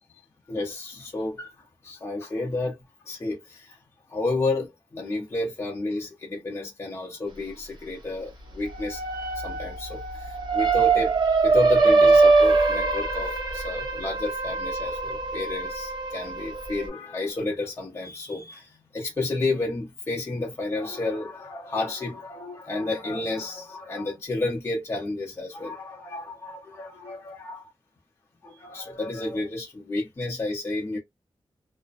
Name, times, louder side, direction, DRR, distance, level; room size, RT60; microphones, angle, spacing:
voice 1, 0.5-1.5 1.8-2.8 3.1-3.8 4.1-9.0 9.4-27.7 28.4-31.0, left 2 dB, 30° left, 0.6 m, -31 dB
sound 1, 8.7-16.9, right 3 dB, 50° right, 1.1 m, -23 dB
2.5 x 2.1 x 2.3 m
wide cardioid pair, 175°, 10 cm